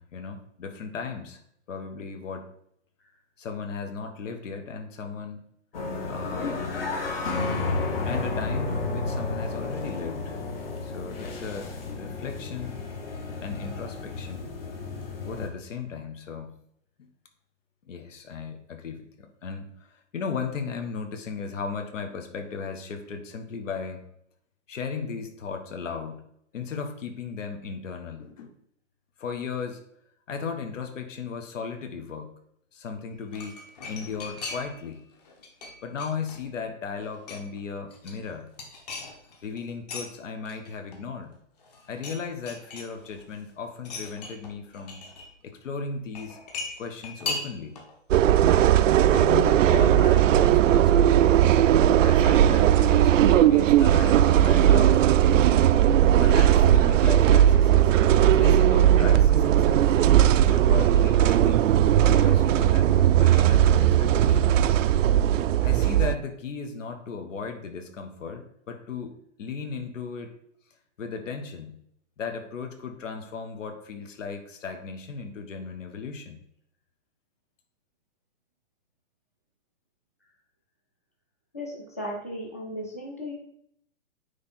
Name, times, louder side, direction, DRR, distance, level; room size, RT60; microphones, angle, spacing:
voice 1, 0.0-1.4 1.7-2.5 3.4-5.5 6.0-6.9 8.0-10.4 10.8-12.8 13.4-14.5 15.2-16.6 17.0-17.1 17.9-24.0 24.7-26.3 26.5-28.5 29.2-29.8 30.3-32.3 32.7-35.0 35.8-38.5 39.4-41.3 41.9-45.0 45.4-46.4 46.8-47.8 49.1-51.5 52.0-55.5 56.2-57.9 58.3-61.7 62.0-64.6 65.6-70.3 71.0-71.8 72.2-76.4, left 5 dB, 85° left, 6 dB, 1.4 m, -36 dB
sound 1, 5.7-15.5, left 3 dB, 50° left, 1.3 m, -32 dB
sound 2, 33.1-34.9 35.2-36.6 36.9-37.6 37.9-40.1 40.4-41.3 41.6-42.2 42.5-43.3 43.8-45.3 46.1-47.9 48.2-48.3, left 3 dB, 35° left, 1.1 m, -38 dB
sound 3, 48.1-66.1, right 11 dB, 85° right, 0.5 m, -18 dB
voice 2, 81.5-83.3, equal, 15° left, -1 dB, 0.4 m, -36 dB
9.5 x 3.4 x 4.3 m, 0.71 s
hypercardioid pair, 180°, 37 cm